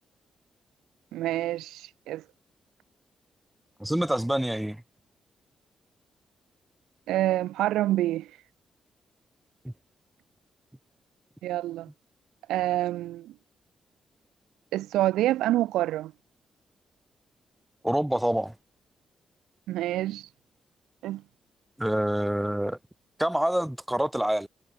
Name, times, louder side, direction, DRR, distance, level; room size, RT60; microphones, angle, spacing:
voice 1, 1.1-2.2 7.1-8.3 11.4-11.9 12.5-13.3 14.7-16.1 19.7-20.3 21.0-21.2, right 14 dB, 85° right, 0.9 m, -27 dB
voice 2, 3.8-4.8 9.6-9.7 17.8-18.5 21.8-22.8 23.2-24.5, right 1 dB, 5° right, 1.7 m, -26 dB
supercardioid pair, 50°, 0 cm